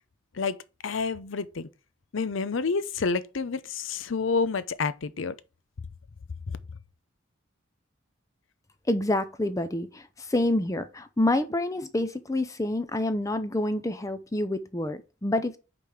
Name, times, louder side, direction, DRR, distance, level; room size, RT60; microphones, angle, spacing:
voice 1, 0.8-1.7 2.1-5.3 6.5-6.6, left 4 dB, 75° left, 0.6 m, -29 dB
voice 2, 8.9-15.6, left 1 dB, 15° left, 0.5 m, -27 dB
5.2 x 4.9 x 5.8 m
head